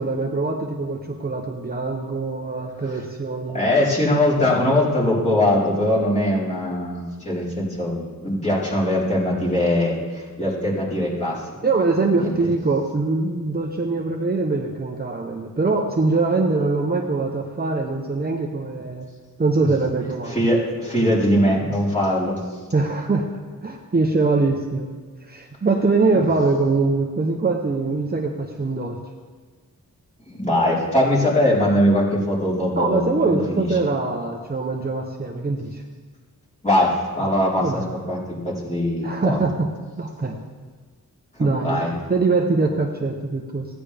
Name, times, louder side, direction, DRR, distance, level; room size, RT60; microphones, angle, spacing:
voice 1, 0.0-3.7 11.6-19.1 19.4-20.3 22.7-23.3 23.6-24.9 25.2-29.0 32.8-35.8 37.6-37.8 39.0-39.7 40.0-40.4 41.4-41.8 42.1-43.7, right 3 dB, 25° right, 0 dB, 0.9 m, -23 dB
voice 2, 3.5-11.4 12.1-12.5 20.3-22.4 26.1-26.3 30.3-33.7 36.6-37.8 38.1-39.4 41.3-41.9, left 1 dB, 20° left, -8 dB, 4.2 m, -21 dB
16.5 x 10.0 x 3.5 m, 1.4 s
wide cardioid pair, 105°, 35 cm